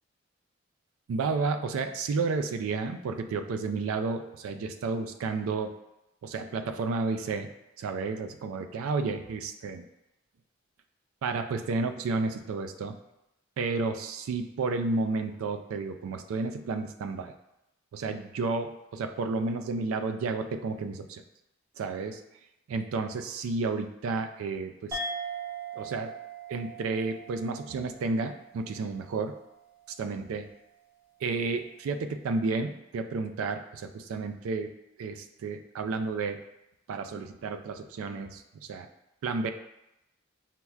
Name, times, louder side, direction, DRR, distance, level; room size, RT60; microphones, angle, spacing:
voice 1, 1.1-5.7 6.2-7.5 7.8-9.8 11.2-13.0 13.6-17.3 17.9-21.2 21.8-22.2 22.7-25.0 25.8-26.1 26.5-29.4 29.9-30.5 31.2-34.7 35.0-36.4 36.9-38.9 39.2-39.5, right 4 dB, 85° right, 7 dB, 0.3 m, -31 dB
sound 1, 24.9-29.8, right 3 dB, 10° right, 0.4 m, -40 dB
5.6 x 2.1 x 2.3 m, 0.87 s
head